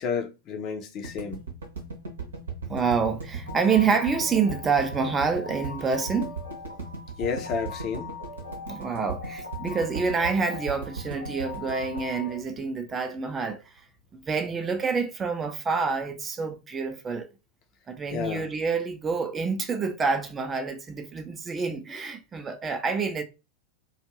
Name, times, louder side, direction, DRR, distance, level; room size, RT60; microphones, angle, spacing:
voice 1, 0.0-1.4 7.2-8.1 18.1-18.5, left 6 dB, 35° left, 0.7 m, -31 dB
sound 1, 1.0-13.2, right 4 dB, 70° right, 0.8 m, -37 dB
voice 2, 2.7-6.3 8.7-13.7 14.1-17.3 17.9-23.2, right 5 dB, 20° right, 0.6 m, -27 dB
sound 2, 3.5-12.4, left 4 dB, 90° left, 0.7 m, -41 dB
2.5 x 2.3 x 3.1 m
figure-of-eight pair, 90°, 0 cm